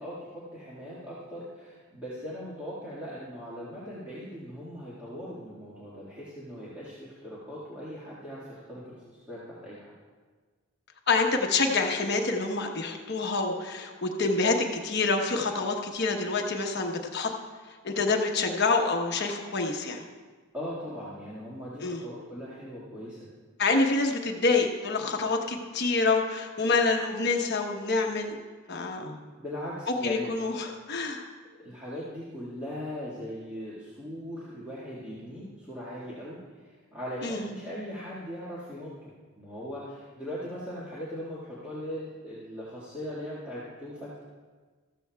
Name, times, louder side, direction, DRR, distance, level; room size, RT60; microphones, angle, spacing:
voice 1, 0.0-9.9 20.5-23.3 29.0-30.3 31.6-39.1 39.4-44.2, equal, 5° right, -10 dB, 1.7 m, -39 dB
voice 2, 11.1-17.3 17.8-20.0 21.8-22.0 23.6-28.4 28.7-29.1 30.0-31.3 37.2-37.5, left 3 dB, 45° left, 2 dB, 1.0 m, -27 dB
14.0 x 14.0 x 2.3 m, 1.4 s
head